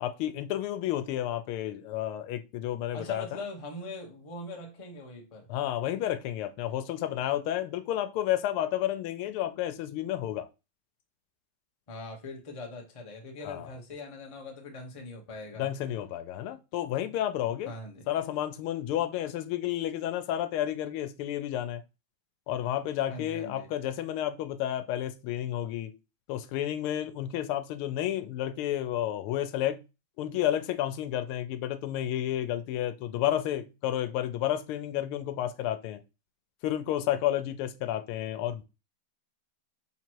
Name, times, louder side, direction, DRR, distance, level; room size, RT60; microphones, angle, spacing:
voice 1, 0.0-3.4 5.5-10.5 13.4-13.7 15.6-17.7 18.1-21.8 22.5-25.9 26.3-29.8 30.2-36.0 36.6-38.6, left 12 dB, 85° left, 1.5 m, -31 dB
voice 2, 2.9-5.5 11.9-15.7 17.7-18.0 23.1-23.7, left 2 dB, 40° left, 0.4 m, -41 dB
4.1 x 2.9 x 4.4 m
omnidirectional pair, 2.3 m